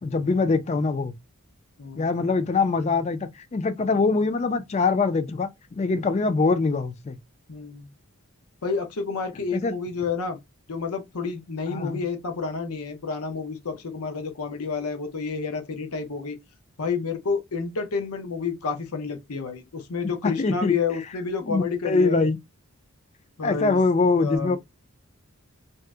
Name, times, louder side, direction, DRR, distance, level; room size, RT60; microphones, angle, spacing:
voice 1, 0.0-1.1 1.9-7.2 9.5-9.7 11.7-12.0 20.2-20.7 21.5-22.4 23.4-24.6, left 3 dB, 30° left, 0.3 m, -23 dB
voice 2, 7.5-7.9 8.6-10.4 10.7-16.4 16.8-22.3 23.4-23.8 24.2-24.6, left 5 dB, 85° left, 0.7 m, -29 dB
2.7 x 2.0 x 3.4 m
head